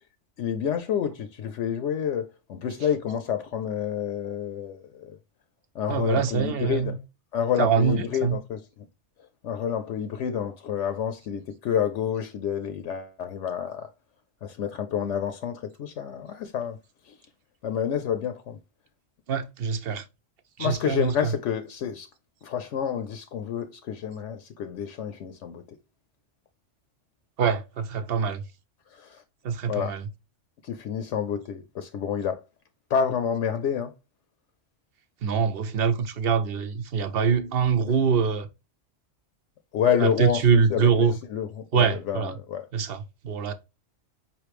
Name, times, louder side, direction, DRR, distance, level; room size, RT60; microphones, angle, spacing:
voice 1, 0.4-5.2 5.7-7.0 7.3-8.9 9.4-13.9 14.4-16.8 17.0-17.2 17.6-18.6 20.6-22.1 22.4-25.6 28.9-29.2 29.7-30.0 30.6-32.4 32.9-33.9 39.7-42.7, left 8 dB, 75° left, 0.9 m, -29 dB
voice 2, 5.9-7.0 7.6-8.4 19.3-20.0 20.6-21.3 27.4-28.4 29.4-30.0 35.2-38.5 40.0-41.1 41.7-42.3 42.7-43.5, right 6 dB, 60° right, 0.8 m, -24 dB
5.3 x 3.1 x 3.2 m
omnidirectional pair, 1.3 m